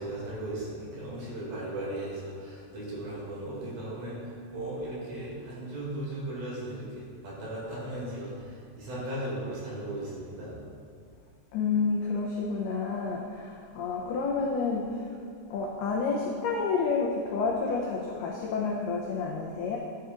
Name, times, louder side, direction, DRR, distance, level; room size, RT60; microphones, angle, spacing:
voice 1, 0.0-10.6, right 1 dB, 55° right, -6 dB, 3.7 m, -37 dB
voice 2, 11.5-15.2 15.5-19.8, left 4 dB, 90° left, -2 dB, 2.2 m, -29 dB
12.5 x 9.8 x 2.5 m, 2.3 s
omnidirectional pair, 5.5 m